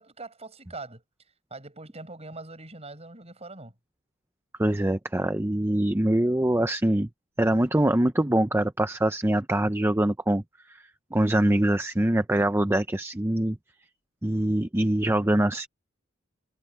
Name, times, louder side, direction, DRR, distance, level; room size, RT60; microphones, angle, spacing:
voice 1, 0.0-3.7, right 3 dB, 30° right, 7.7 m, -43 dB
voice 2, 4.6-7.1 7.4-10.4 10.7-10.8 11.1-13.6 14.2-15.7, right 1 dB, 10° right, 0.7 m, -24 dB
head